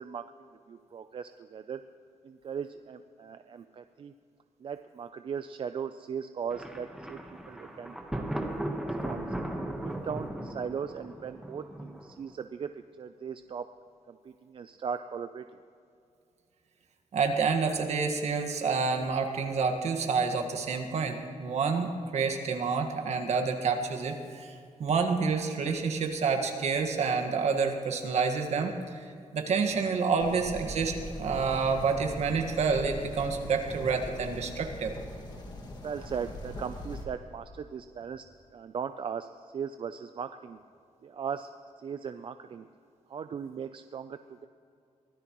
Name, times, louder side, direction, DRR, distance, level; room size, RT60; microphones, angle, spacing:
voice 1, 0.0-1.8 2.2-4.1 4.6-7.2 7.5-8.2 8.7-9.2 9.8-13.7 14.1-15.5 35.8-38.2 38.5-40.6 41.0-41.5 41.8-42.7 43.1-44.5, right 7 dB, 45° right, 9 dB, 0.4 m, -38 dB
Thunder, 6.5-12.3, right 1 dB, 5° right, 1.2 m, -37 dB
voice 2, 17.1-24.5 24.8-29.1 29.3-34.9, right 5 dB, 65° right, 4 dB, 1.6 m, -28 dB
sound 1, 30.2-37.1, left 1 dB, 35° left, 1.9 m, -41 dB
23.5 x 16.5 x 3.1 m, 2.5 s
wide cardioid pair, 165°, 12 cm